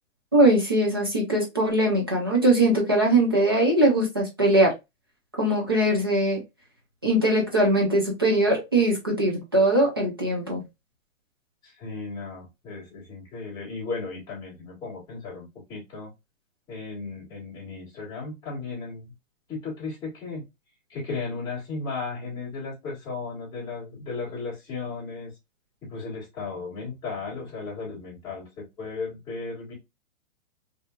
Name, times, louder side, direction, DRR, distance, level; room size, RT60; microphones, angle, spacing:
voice 1, 0.3-4.7 5.4-6.4 7.0-10.6, right 1 dB, 20° right, 0.4 m, -21 dB
voice 2, 11.6-16.1 16.7-19.1 19.5-20.4 20.9-25.3 25.8-29.7, left 4 dB, 10° left, 1.9 m, -35 dB
3.5 x 2.7 x 2.4 m
hypercardioid pair, 165°, 39 cm